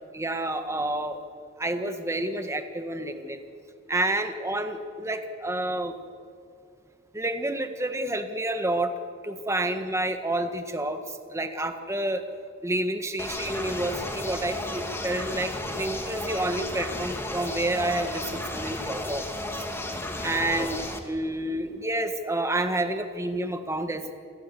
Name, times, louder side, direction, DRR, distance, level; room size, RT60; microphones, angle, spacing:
voice 1, 0.1-1.2 1.6-3.4 3.9-6.0 7.1-12.2 12.6-19.5 20.2-20.8 21.1-24.1, right 1 dB, 15° right, 7 dB, 1.5 m, -29 dB
sound 1, 13.2-21.0, left 1 dB, 10° left, 2.0 m, -33 dB
27.5 x 15.5 x 8.3 m, 2.3 s
head